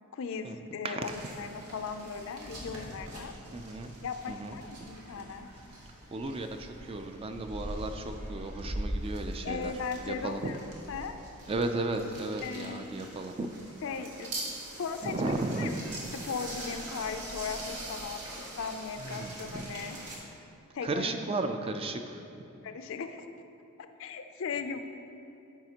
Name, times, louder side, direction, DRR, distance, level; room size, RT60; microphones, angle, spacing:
voice 1, 0.1-3.3 4.0-5.5 9.4-10.6 10.9-11.2 12.4-12.8 13.8-14.4 14.8-15.3 15.6-15.7 16.2-20.0 20.7-21.2 22.6-23.3 24.0-24.8, left 5 dB, 60° left, 8 dB, 0.4 m, -37 dB
voice 2, 0.8-1.2 3.5-4.0 4.3-5.6 6.1-9.7 10.1-10.5 11.5-13.5 15.0-15.9 19.0-19.7 20.8-22.5, right 2 dB, 25° right, 6 dB, 0.3 m, -35 dB
sound 1, 1.0-20.2, right 1 dB, 90° right, 1.4 m, -42 dB
12.0 x 4.9 x 2.9 m, 2.8 s
head